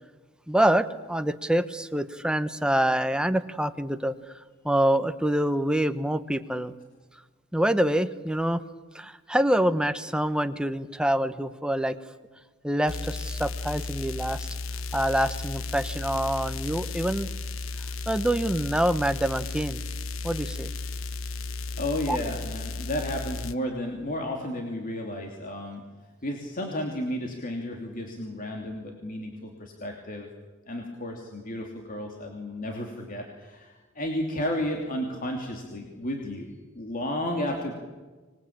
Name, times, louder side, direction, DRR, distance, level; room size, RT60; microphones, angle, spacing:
voice 1, 0.5-4.1 4.6-6.7 7.5-8.6 8.9-12.0 12.6-14.5 14.9-17.3 18.1-19.8 20.2-20.7 22.1-22.2, right 1 dB, 5° right, 10 dB, 1.0 m, -26 dB
sound 1, 12.9-23.5, left 3 dB, 75° left, 1.1 m, -34 dB
voice 2, 21.8-25.8 26.2-30.3 30.7-37.7, left 1 dB, 45° left, 2 dB, 2.9 m, -32 dB
25.5 x 20.5 x 8.8 m, 1.3 s
head